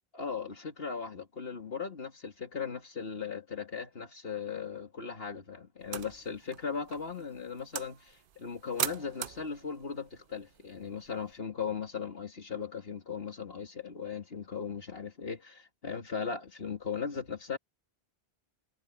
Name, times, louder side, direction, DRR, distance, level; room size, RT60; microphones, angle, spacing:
voice 1, 0.1-17.6, left 6 dB, 65° left, 2.1 m, -38 dB
sound 1, 5.8-11.4, right 10 dB, 60° right, 0.8 m, -42 dB
omnidirectional pair, 1.1 m